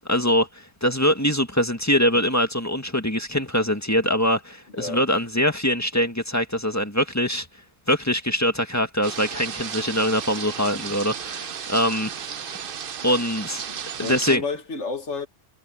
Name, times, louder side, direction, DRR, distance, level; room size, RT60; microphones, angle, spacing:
voice 1, 0.1-7.5 7.9-12.1 13.0-13.6 14.0-14.4, equal, 15° left, 1.8 m, -23 dB
sound 1, 9.0-14.4, right 7 dB, 55° right, 0.9 m, -34 dB
voice 2, 13.7-15.3, left 3 dB, 85° left, 2.3 m, -31 dB
omnidirectional pair, 1.2 m